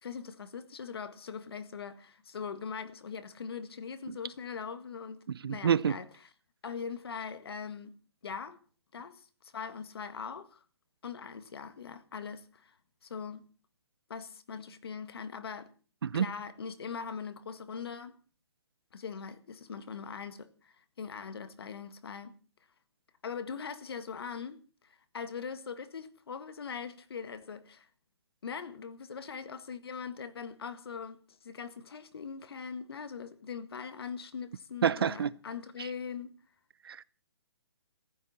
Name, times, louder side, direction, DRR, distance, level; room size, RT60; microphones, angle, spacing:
voice 1, 0.0-5.2 5.5-6.1 6.6-7.9 8.2-8.6 8.9-10.6 11.0-12.8 13.0-13.4 14.1-15.7 16.1-18.1 18.9-22.3 23.2-27.9 28.4-36.3, left 6 dB, 65° left, 1.9 m, -41 dB
voice 2, 5.3-6.0 16.0-16.3 34.8-35.3 36.8-37.0, right 8 dB, 60° right, 0.7 m, -28 dB
18.0 x 15.0 x 4.3 m
hypercardioid pair, 170°, 14 cm